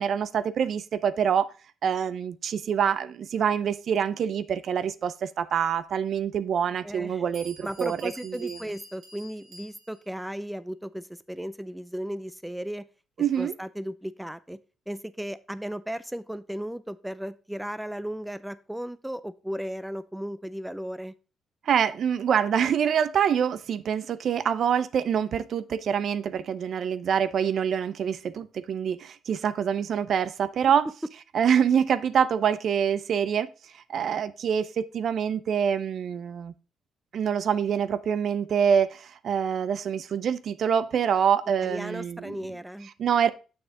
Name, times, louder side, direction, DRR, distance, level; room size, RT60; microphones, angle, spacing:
voice 1, 0.0-1.5 1.8-8.6 13.2-13.5 21.7-30.9 31.3-33.5 33.9-36.5 37.1-42.3 43.0-43.3, right 8 dB, 60° right, 0.5 m, -25 dB
voice 2, 6.8-7.2 7.6-12.9 13.4-14.6 14.9-21.1 41.6-42.9, equal, 5° right, 0.4 m, -35 dB
Bell, 7.0-7.1 7.3-10.1, right 1 dB, 75° right, 2.7 m, -48 dB
7.2 x 6.1 x 3.8 m
cardioid pair, 90°, 0 cm